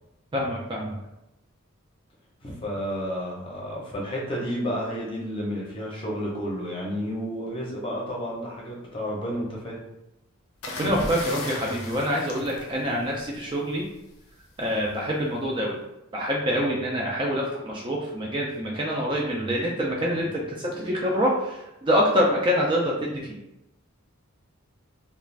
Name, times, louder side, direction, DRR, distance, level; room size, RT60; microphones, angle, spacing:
voice 1, 0.3-1.0 10.8-13.9 14.6-15.8 16.1-23.3, equal, 20° right, -2 dB, 0.3 m, -26 dB
voice 2, 2.4-9.8, equal, 25° left, -3 dB, 0.6 m, -31 dB
Splash Jumping B, 10.6-13.4 14.6-14.9, left 2 dB, 80° left, 0.6 m, -35 dB
2.4 x 2.3 x 3.2 m, 0.90 s
head